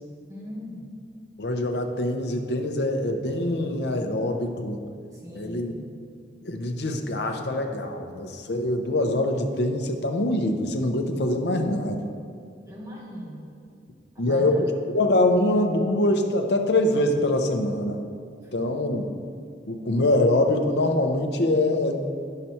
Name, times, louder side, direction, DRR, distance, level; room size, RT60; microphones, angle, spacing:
voice 1, 0.3-0.9 5.1-5.9 12.7-13.4 14.1-14.6 18.4-18.9, left 1 dB, 20° right, -5 dB, 1.7 m, -40 dB
voice 2, 1.4-4.8 5.3-5.7 6.4-12.0 14.2-14.7 14.9-18.0 18.5-19.1 19.7-22.0, left 1 dB, 70° left, 4 dB, 0.8 m, -24 dB
9.6 x 6.7 x 4.4 m, 2.2 s
head